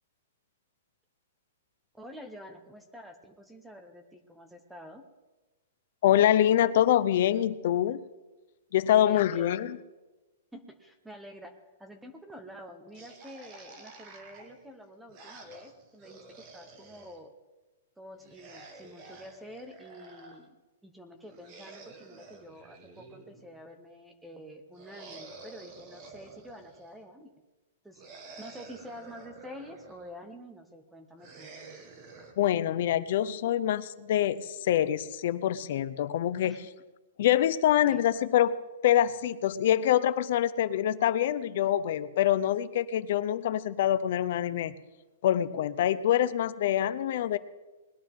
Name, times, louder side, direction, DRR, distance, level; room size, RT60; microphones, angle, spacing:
voice 1, 1.9-5.0 8.9-9.7 10.5-17.3 18.0-20.6 20.8-27.4 27.8-28.0 28.4-31.5 36.4-36.7 37.8-38.0, equal, 5° right, 7 dB, 0.9 m, -48 dB
voice 2, 6.0-8.0 8.7-9.8 32.4-36.6 37.2-38.6 38.8-44.7 45.2-47.4, left 11 dB, 45° left, 14 dB, 0.6 m, -25 dB
sound 1, 12.9-17.2 18.2-20.4 21.2-23.6 24.8-27.0 28.0-30.1 31.2-32.3, right 3 dB, 30° right, 1.4 m, -50 dB
20.0 x 11.0 x 3.6 m, 1.2 s
hypercardioid pair, 170°, 0 cm